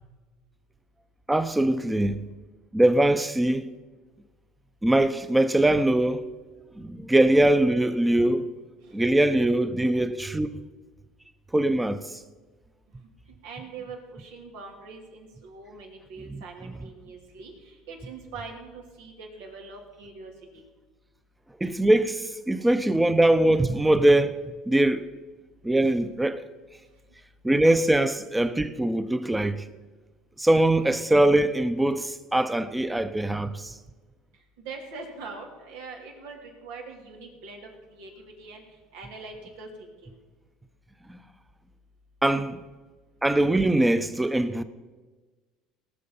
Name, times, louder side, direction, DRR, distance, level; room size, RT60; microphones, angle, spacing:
voice 1, 1.3-2.2 2.7-3.7 4.8-6.3 6.8-8.5 8.9-10.5 11.5-12.0 16.3-16.4 21.6-24.4 24.7-25.1 25.6-26.4 27.4-29.6 30.4-33.8 41.1-41.2 42.2-42.6 43.2-44.6, right 1 dB, 10° right, 0.8 m, -22 dB
voice 2, 8.8-9.2 13.4-20.6 34.6-38.6 38.9-40.1, right 4 dB, 85° right, 2.9 m, -43 dB
18.5 x 6.7 x 5.6 m
supercardioid pair, 100°, 0 cm